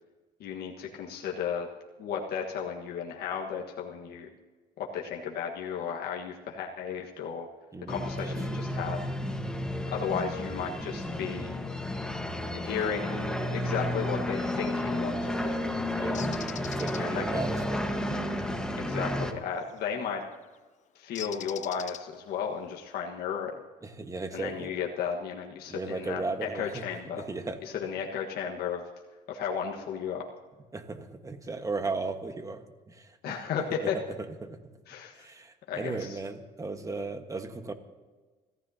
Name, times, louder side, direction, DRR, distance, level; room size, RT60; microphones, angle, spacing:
voice 1, 0.4-1.7 2.0-4.3 4.8-7.5 7.9-9.0 9.9-11.6 12.5-15.6 17.0-17.3 18.8-20.2 20.9-23.5 24.3-27.2 27.6-28.8 29.3-30.2 33.2-34.0 34.9-35.3 35.7-36.2, left 7 dB, 70° left, 0 dB, 1.5 m, -34 dB
voice 2, 7.7-8.8 15.9-16.2 16.5-18.0 23.8-24.7 25.7-26.8 27.1-27.6 30.7-33.3 33.8-33.9 34.4-34.6 35.1-37.7, right 3 dB, 20° right, 7 dB, 1.4 m, -36 dB
sound 1, 7.9-19.3, left 1 dB, 5° left, 1.4 m, -32 dB
Bird, 16.1-17.0 19.6-19.9 21.1-22.3, left 10 dB, 45° left, 0.5 m, -41 dB
25.5 x 15.0 x 2.8 m, 1.3 s
cardioid pair, 110°, 17 cm